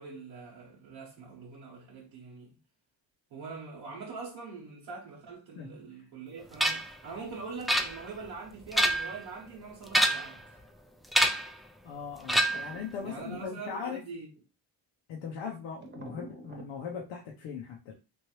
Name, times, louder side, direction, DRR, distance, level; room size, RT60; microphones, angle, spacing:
voice 1, 0.0-2.6 3.3-10.6 13.0-14.3, right 4 dB, 85° right, 1.0 m, -43 dB
sound 1, 6.6-6.9 7.7-8.3 8.6-9.2 9.9-10.4 11.1-11.5 12.3-12.8, equal, ahead, 0.3 m, -26 dB
voice 2, 11.8-14.0 15.1-17.9, left 6 dB, 90° left, 0.7 m, -39 dB
sound 2, 12.4-13.8 15.8-16.8, right 1 dB, 25° right, 0.9 m, -48 dB
3.0 x 2.5 x 3.0 m
supercardioid pair, 60°, 45 cm